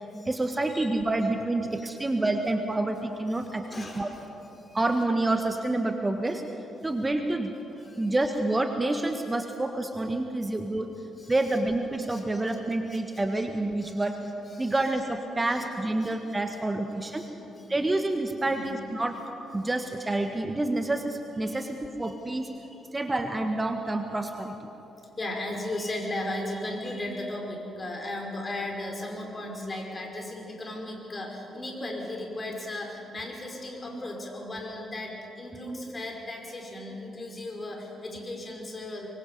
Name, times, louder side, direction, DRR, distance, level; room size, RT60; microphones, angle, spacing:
voice 1, 0.2-4.1 4.7-6.4 6.8-7.5 8.0-10.9 11.3-14.2 14.6-17.2 17.7-19.2 19.5-22.5 22.9-24.5 35.7-36.0, right 2 dB, 20° right, 6 dB, 1.5 m, -28 dB
voice 2, 3.3-4.3 4.7-4.8 7.8-8.2 11.2-11.6 12.1-12.6 12.9-13.0 13.3-13.4 13.8-14.0 14.5-14.9 15.4-15.7 16.0-16.2 16.5-17.7 18.4-18.7 21.4-21.7 22.0-22.1 22.7-22.8 25.2-39.1, left 1 dB, 30° left, 1 dB, 5.2 m, -37 dB
24.5 x 22.5 x 5.6 m, 2.9 s
figure-of-eight pair, 40°, 0 cm